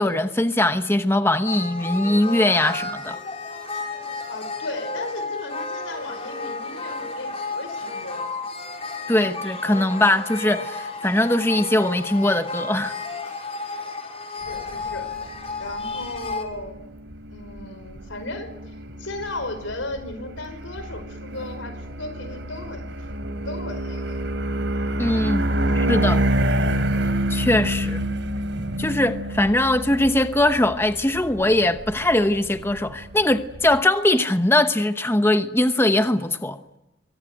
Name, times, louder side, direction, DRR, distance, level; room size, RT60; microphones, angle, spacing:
voice 1, 0.0-3.2 9.1-12.9 25.0-25.5 25.9-26.2 27.3-28.0 28.8-36.6, left 1 dB, 10° left, 1.0 m, -21 dB
sound 1, 1.5-16.4, left 3 dB, 30° left, 4.3 m, -32 dB
voice 2, 4.3-8.4 14.3-15.1 15.6-16.8 17.3-23.1 23.4-24.3, left 2 dB, 90° left, 5.3 m, -35 dB
sound 2, 14.5-33.8, right 1 dB, 70° right, 3.3 m, -28 dB
25.0 x 24.0 x 9.3 m
head